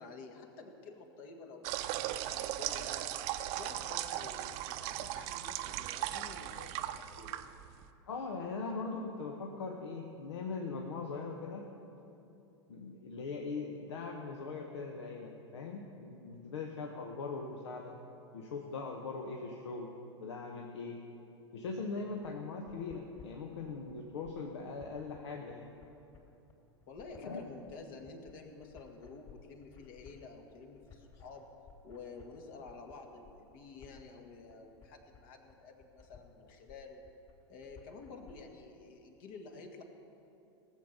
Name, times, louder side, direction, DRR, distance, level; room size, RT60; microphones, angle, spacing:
voice 1, 0.0-3.1 3.6-7.4 26.9-31.5 31.8-37.0 37.5-39.8, left 4 dB, 55° left, 3 dB, 1.9 m, -50 dB
sound 1, 1.6-7.9, right 13 dB, 50° right, 0.7 m, -38 dB
voice 2, 8.1-11.7 12.7-18.0 18.3-19.9 20.2-21.0 21.5-25.7 27.2-27.4, left 4 dB, 75° left, 2 dB, 1.2 m, -40 dB
sound 2, 22.2-38.3, left 6 dB, 40° left, 3.5 m, -58 dB
18.0 x 7.5 x 6.8 m, 2.8 s
hypercardioid pair, 95°, 15 cm